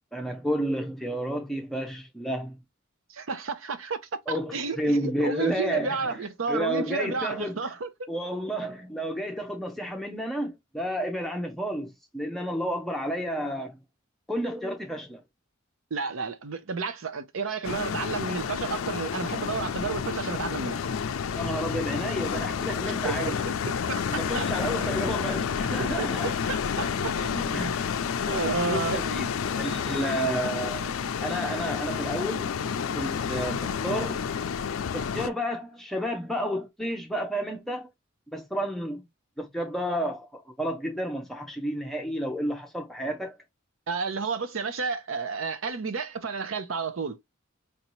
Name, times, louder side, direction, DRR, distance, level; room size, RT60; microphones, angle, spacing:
voice 1, 0.1-2.6 4.3-7.7 8.1-13.8 14.3-15.2 21.4-23.3 24.1-26.3 27.5-27.9 28.7-30.9 31.2-32.5 32.9-34.2 34.9-37.9 38.3-39.0 39.4-43.3, equal, ahead, 0.5 m, -31 dB
voice 2, 3.1-4.0 4.3-8.1 15.9-20.8 22.9-24.5 25.8-27.8 28.3-29.3 43.9-47.2, right 4 dB, 75° right, 0.7 m, -32 dB
sound 1, 17.6-35.3, left 7 dB, 85° left, 0.4 m, -30 dB
4.5 x 2.7 x 3.0 m
head